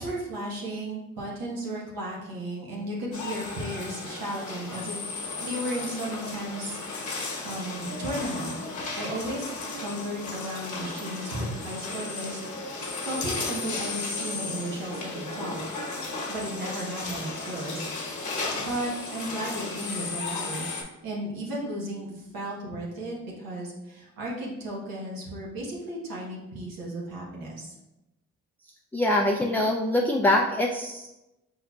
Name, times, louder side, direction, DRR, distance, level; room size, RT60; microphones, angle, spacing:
voice 1, 0.0-15.6 16.3-17.9 18.2-18.3 18.5-20.6 21.0-27.7, right 1 dB, 85° right, -4 dB, 1.1 m, -35 dB
sound 1, 3.1-20.8, left 3 dB, 55° left, 1.0 m, -35 dB
voice 2, 28.9-31.1, left 1 dB, 5° left, 0 dB, 0.3 m, -24 dB
4.4 x 3.7 x 2.3 m, 0.95 s
cardioid pair, 60°, 33 cm